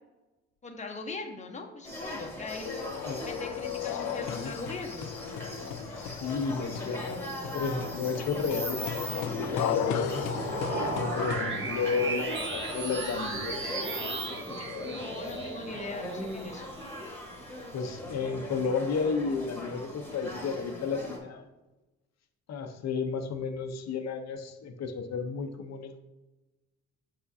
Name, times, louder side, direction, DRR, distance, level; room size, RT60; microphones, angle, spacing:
voice 1, 0.6-2.7 3.2-5.1 14.8-16.7, left 3 dB, 25° left, 3 dB, 0.9 m, -41 dB
sound 1, 1.8-21.2, left 1 dB, 5° left, 1.4 m, -40 dB
sound 2, 2.6-11.4, left 9 dB, 90° left, 0.5 m, -35 dB
voice 2, 6.0-9.2 9.5-10.2 10.9-15.0 17.7-21.4 22.5-26.0, left 5 dB, 60° left, 6 dB, 0.8 m, -33 dB
sound 3, 6.8-17.7, right 2 dB, 40° right, 1.1 m, -37 dB
7.3 x 4.9 x 2.7 m, 1.1 s
cardioid pair, 90°, 30 cm